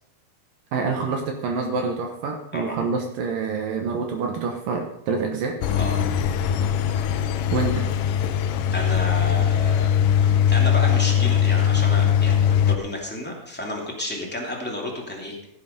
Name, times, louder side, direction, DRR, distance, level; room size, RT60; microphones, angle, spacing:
voice 1, 0.7-5.6 7.5-7.9, right 4 dB, 65° right, 3 dB, 2.5 m, -27 dB
Engine, 5.6-12.8, left 8 dB, 90° left, 1.9 m, -20 dB
voice 2, 8.7-9.9 10.2-15.5, left 1 dB, 5° left, -2 dB, 1.6 m, -31 dB
15.5 x 7.7 x 5.3 m, 0.76 s
omnidirectional pair, 4.7 m